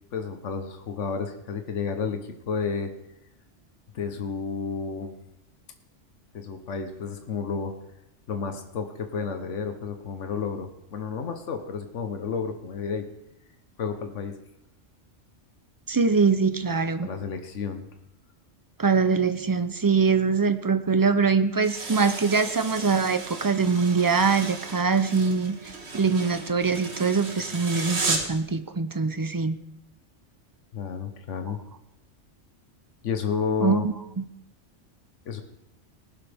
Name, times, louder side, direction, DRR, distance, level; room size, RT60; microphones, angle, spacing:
voice 1, 0.1-2.2 2.5-2.9 3.9-5.1 6.3-7.7 8.3-13.0 13.8-14.3 17.0-17.9 30.7-31.6 33.0-33.8 35.3-35.4, left 6 dB, 80° left, 6 dB, 1.4 m, -31 dB
voice 2, 15.9-17.1 18.8-29.6 33.6-33.9, right 5 dB, 35° right, 11 dB, 0.3 m, -23 dB
sound 1, 21.6-28.4, right 3 dB, 65° right, 1.9 m, -34 dB
19.0 x 11.0 x 3.5 m, 0.83 s
omnidirectional pair, 1.2 m